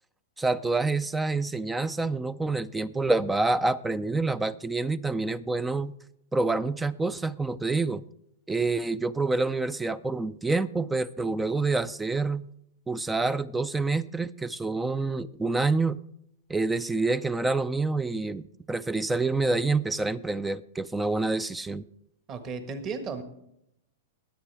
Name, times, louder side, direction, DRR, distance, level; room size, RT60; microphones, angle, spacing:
voice 1, 0.4-5.9 6.3-8.0 8.5-12.5 12.9-16.0 16.5-21.8, right 3 dB, 10° right, 0.4 m, -27 dB
voice 2, 22.3-23.2, right 4 dB, 30° right, 1.5 m, -34 dB
21.5 x 8.1 x 3.4 m
hypercardioid pair, 140°, 0 cm